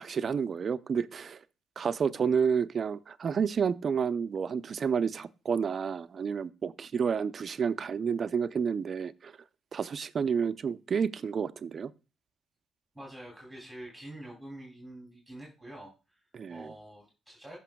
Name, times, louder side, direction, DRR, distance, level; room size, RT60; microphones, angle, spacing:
voice 1, 0.0-1.4 1.8-9.3 9.7-11.9 16.3-16.7, right 6 dB, 45° right, 0.5 m, -30 dB
voice 2, 12.9-16.2 16.5-17.6, right 1 dB, 5° right, 3.1 m, -46 dB
15.0 x 5.9 x 2.3 m
cardioid pair, 90°, 0 cm